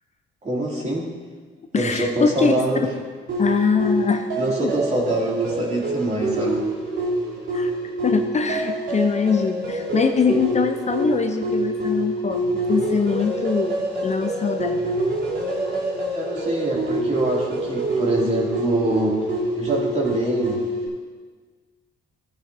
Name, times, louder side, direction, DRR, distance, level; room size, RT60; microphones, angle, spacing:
voice 1, 0.4-1.1 1.7-2.8 4.3-6.6 16.1-19.2 19.6-20.6, right 2 dB, 35° right, -3 dB, 2.9 m, -24 dB
voice 2, 1.7-2.5 3.4-4.2 4.6-4.7 7.5-7.7 8.0-15.0 15.7-15.8 16.3-16.5, left 5 dB, 35° left, 5 dB, 0.7 m, -23 dB
sound 1, 3.3-20.9, right 1 dB, 70° right, 3.4 m, -26 dB
15.5 x 8.4 x 2.8 m, 1.5 s
cardioid pair, 90°, 20 cm